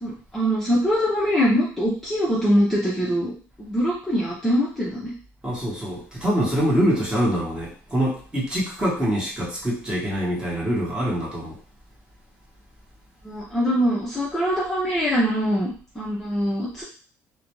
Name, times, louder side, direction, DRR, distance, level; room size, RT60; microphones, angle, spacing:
voice 1, 0.0-5.1 13.2-15.7 16.0-16.8, equal, 5° left, -8 dB, 0.7 m, -23 dB
voice 2, 5.4-11.6, equal, 15° right, -5 dB, 1.0 m, -24 dB
2.5 x 2.1 x 3.0 m, 0.41 s
cardioid pair, 130°, 6 cm